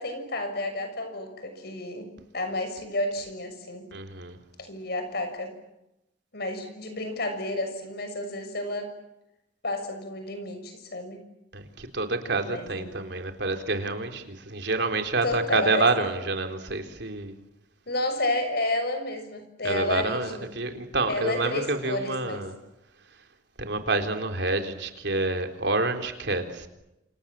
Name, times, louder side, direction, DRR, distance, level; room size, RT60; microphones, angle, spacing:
voice 1, 0.0-2.1 2.3-3.9 4.6-5.5 6.3-8.9 9.6-11.2 12.5-12.9 15.2-15.8 17.9-20.4 21.1-22.5, left 2 dB, 60° left, 8 dB, 6.4 m, -31 dB
voice 2, 3.9-4.4 11.5-17.3 19.6-22.5 23.6-26.7, right 3 dB, 65° right, 6 dB, 3.8 m, -28 dB
28.0 x 28.0 x 7.5 m, 0.90 s
head